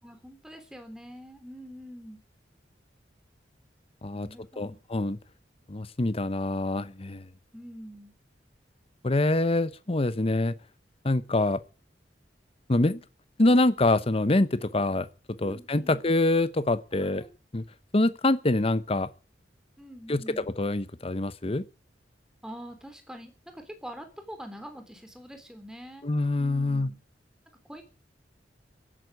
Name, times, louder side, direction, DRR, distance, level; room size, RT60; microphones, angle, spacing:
voice 1, 0.0-2.2 4.1-4.8 7.5-8.1 15.4-16.0 16.9-17.3 19.8-20.5 22.4-26.1 26.4-27.0 27.6-27.8, equal, 5° right, 3.4 m, -44 dB
voice 2, 4.6-5.2 5.7-7.2 9.0-10.5 11.0-11.6 12.7-13.0 13.4-15.1 15.4-17.2 17.5-17.6 17.9-19.1 20.1-20.2 20.6-21.6 26.0-26.9, left 2 dB, 35° left, 0.8 m, -25 dB
16.0 x 9.3 x 9.3 m
head